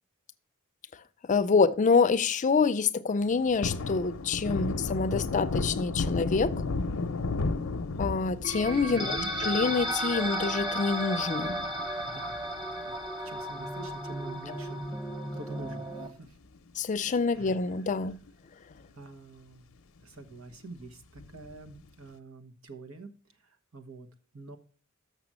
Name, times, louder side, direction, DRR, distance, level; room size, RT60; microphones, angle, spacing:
voice 1, 1.3-6.6 8.0-9.2 9.4-11.6 16.8-18.2, left 4 dB, 35° left, 0.4 m, -26 dB
Thunder, 3.2-13.9 14.3-14.4 14.8-16.3 16.6-16.7 17.1-17.9 18.3-18.4 18.7-18.8 21.2-21.7, left 3 dB, 80° left, 0.6 m, -35 dB
sound 1, 8.4-16.1, equal, 25° right, 1.3 m, -34 dB
voice 2, 8.9-9.3 12.0-12.4 12.8-14.8 15.3-16.4 17.3-18.1 19.0-19.7 20.0-23.1 23.4-24.1 24.3-24.6, right 2 dB, 85° right, 1.3 m, -46 dB
6.8 x 5.9 x 7.4 m
head